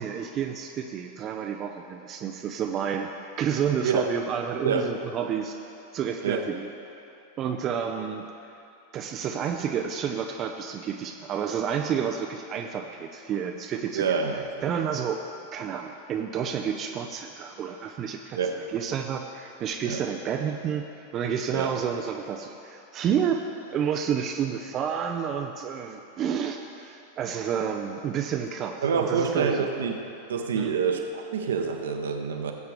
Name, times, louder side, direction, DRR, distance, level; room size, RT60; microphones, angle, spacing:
voice 1, 0.0-6.7 7.4-8.2 8.9-15.2 15.5-18.4 18.7-23.4 23.7-29.7 30.6-30.7, right 8 dB, 30° right, 4 dB, 0.5 m, -30 dB
voice 2, 13.9-14.5 18.4-18.6 19.8-20.0 21.5-21.7 28.8-30.0 30.3-32.5, right 6 dB, 65° right, 4 dB, 1.0 m, -26 dB
18.5 x 8.0 x 3.3 m, 2.7 s
figure-of-eight pair, 90°, 0 cm